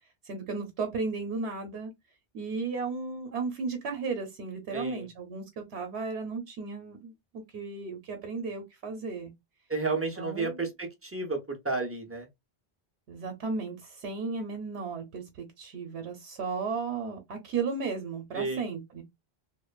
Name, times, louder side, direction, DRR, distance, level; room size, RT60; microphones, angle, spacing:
voice 1, 0.3-1.9 2.3-7.1 7.5-9.3 10.2-10.7 13.1-13.8 14.0-15.2 15.6-19.0, right 4 dB, 80° right, 0.9 m, -34 dB
voice 2, 4.7-5.1 9.7-12.3 18.3-18.7, right 3 dB, 20° right, 0.3 m, -32 dB
2.8 x 2.0 x 2.2 m
omnidirectional pair, 1.1 m